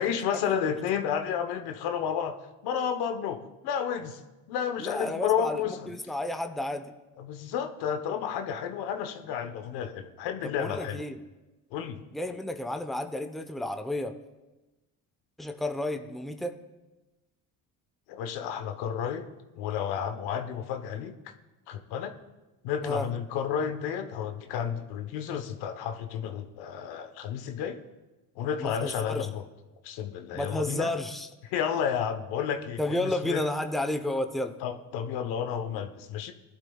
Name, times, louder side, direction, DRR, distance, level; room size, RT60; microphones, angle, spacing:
voice 1, 0.0-2.3 2.6-4.2 4.5-5.9 7.2-11.0 11.7-12.0 18.1-19.3 19.6-21.1 21.7-22.1 22.6-27.8 28.4-29.4 29.8-30.9 31.5-33.4 34.6-36.3, left 8 dB, 80° left, 7 dB, 1.1 m, -31 dB
voice 2, 4.8-6.9 10.4-11.2 12.1-14.2 15.4-16.5 22.8-23.1 28.6-29.3 30.3-31.3 32.8-34.6, left 1 dB, ahead, 5 dB, 0.9 m, -32 dB
20.0 x 11.5 x 2.3 m, 1.1 s
supercardioid pair, 80°, 38 cm